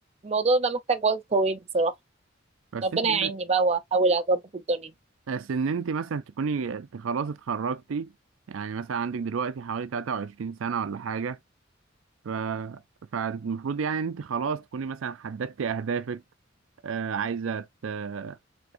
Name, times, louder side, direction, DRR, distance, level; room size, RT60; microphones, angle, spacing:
voice 1, 0.2-1.9 2.8-4.9, right 3 dB, 35° right, 0.5 m, -24 dB
voice 2, 2.7-3.3 5.3-8.1 8.5-11.4 12.2-12.8 13.1-16.2 16.8-18.4, right 6 dB, 80° right, 0.4 m, -31 dB
4.9 x 3.4 x 2.5 m
head